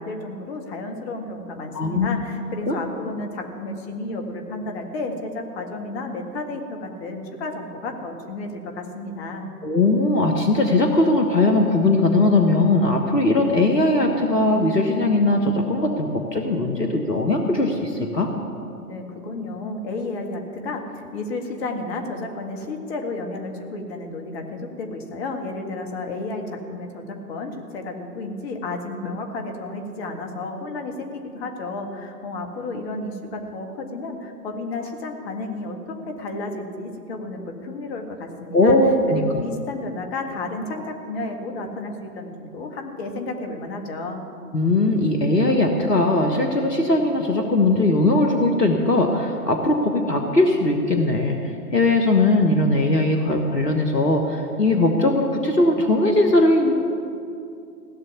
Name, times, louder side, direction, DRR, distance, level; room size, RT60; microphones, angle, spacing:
voice 1, 0.0-9.4 18.9-38.8 39.1-44.2, left 2 dB, 40° left, 3 dB, 2.1 m, -32 dB
voice 2, 1.7-2.2 2.7-2.8 9.6-18.3 38.5-39.2 44.5-56.7, left 2 dB, 90° left, 3 dB, 1.5 m, -19 dB
17.0 x 6.7 x 9.7 m, 2.6 s
figure-of-eight pair, 115°, 47 cm